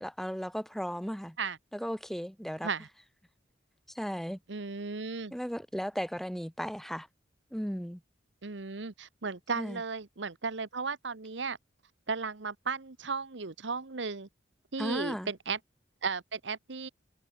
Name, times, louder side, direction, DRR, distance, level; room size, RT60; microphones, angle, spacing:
voice 1, 0.0-1.4 1.7-2.7 3.9-4.4 5.3-7.1 7.5-8.0 9.6-9.8 14.8-15.3, equal, ahead, 3.9 m, -35 dB
voice 2, 4.5-5.3 8.4-11.6 12.1-14.3 14.7-15.6 16.0-16.9, right 4 dB, 75° right, 1.2 m, -35 dB
head